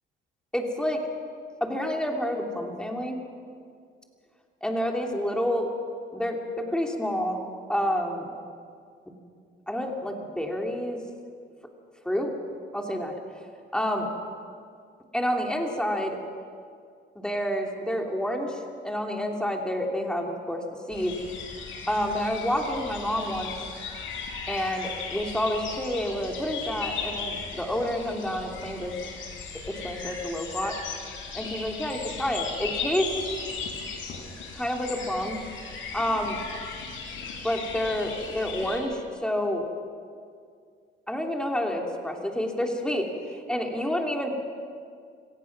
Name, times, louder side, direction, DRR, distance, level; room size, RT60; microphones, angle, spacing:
voice 1, 0.5-1.0 1.6-3.2 4.6-5.7 6.1-7.4 7.7-8.3 9.7-11.0 12.0-12.3 12.7-13.2 13.7-14.1 15.1-16.2 17.1-20.6 20.9-21.1 21.9-23.5 24.5-28.9 29.7-30.8 31.3-33.2 34.5-35.4 35.9-36.4 37.4-39.7 41.1-44.3, equal, 5° left, 1 dB, 2.9 m, -29 dB
sound 1, 20.9-38.8, left 5 dB, 85° left, 4.0 m, -37 dB
25.5 x 17.0 x 6.0 m, 2.2 s
cardioid pair, 90°, 20 cm